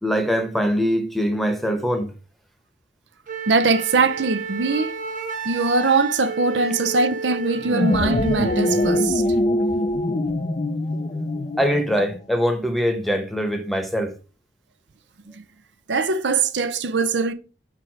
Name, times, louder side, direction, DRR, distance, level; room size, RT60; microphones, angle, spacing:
voice 1, 0.0-2.1 11.6-14.1, equal, ahead, 1.0 m, -22 dB
Wind instrument woodwind instrument, 3.3-9.1, right 5 dB, 50° right, 0.9 m, -32 dB
voice 2, 3.5-4.9 5.4-9.2 15.3-15.4 15.9-17.3, right 4 dB, 75° right, 0.6 m, -21 dB
sound 1, 7.6-12.2, left 1 dB, 35° left, 0.5 m, -23 dB
4.9 x 4.8 x 6.0 m
head